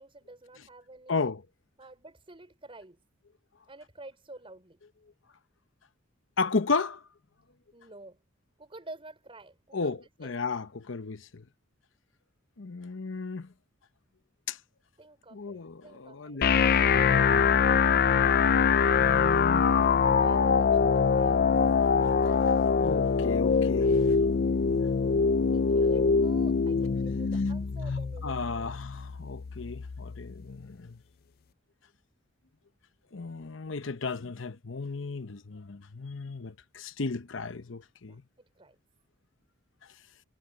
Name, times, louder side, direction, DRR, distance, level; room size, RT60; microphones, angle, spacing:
voice 1, 0.0-1.3 1.8-3.0 3.7-4.8 7.7-8.2 8.6-10.3 15.0-17.1 20.2-21.5 25.5-28.7 38.1-38.2 38.5-38.7, right 2 dB, 30° right, 5.1 m, -49 dB
voice 2, 1.1-1.4 6.4-7.0 9.7-11.4 12.6-13.5 14.5-14.6 15.3-17.5 19.0-19.7 22.8-24.1 28.2-31.0 33.1-38.2, left 4 dB, 70° left, 0.9 m, -34 dB
sound 1, 16.4-30.4, left 5 dB, 50° left, 0.4 m, -24 dB
head